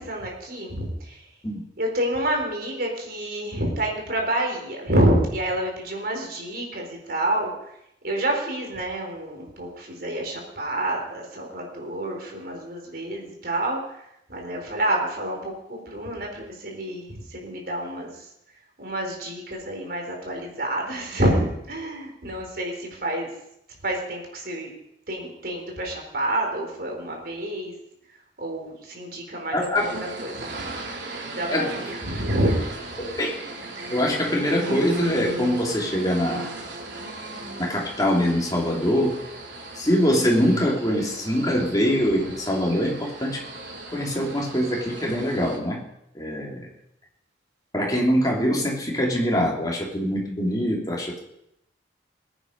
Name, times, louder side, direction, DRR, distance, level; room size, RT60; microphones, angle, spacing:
voice 1, 0.0-1.3 1.8-7.8 8.0-18.3 18.8-23.3 23.8-24.7 25.1-27.7 28.1-30.7 31.3-32.6, right 1 dB, 55° right, 1 dB, 4.2 m, -28 dB
voice 2, 29.5-29.9 31.5-31.6 33.0-33.3 33.9-36.5 37.6-39.2 39.7-43.4 43.9-45.8 46.1-46.7 47.7-51.2, equal, 20° left, -2 dB, 3.2 m, -23 dB
sound 1, 29.8-45.6, right 2 dB, 80° right, 3.0 m, -37 dB
20.5 x 9.1 x 5.5 m, 0.80 s
head